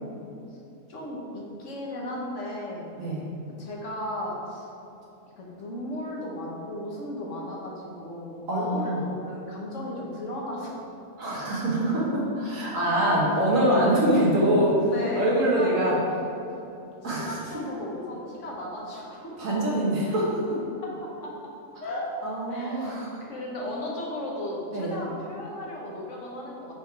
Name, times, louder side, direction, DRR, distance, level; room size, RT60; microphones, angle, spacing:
voice 1, 0.9-2.9 3.6-4.7 5.4-10.7 11.2-11.3 14.8-16.0 16.5-16.6 17.0-19.2 20.8-20.9 21.8-22.1 22.5-26.7, left 1 dB, 65° left, -3 dB, 1.4 m, -35 dB
voice 2, 8.5-9.0 11.2-15.9 17.0-17.3 19.4-20.6 22.2-23.1 24.7-24.9, right 1 dB, 70° right, -6 dB, 1.9 m, -24 dB
5.6 x 5.0 x 4.7 m, 2.8 s
omnidirectional pair, 1.4 m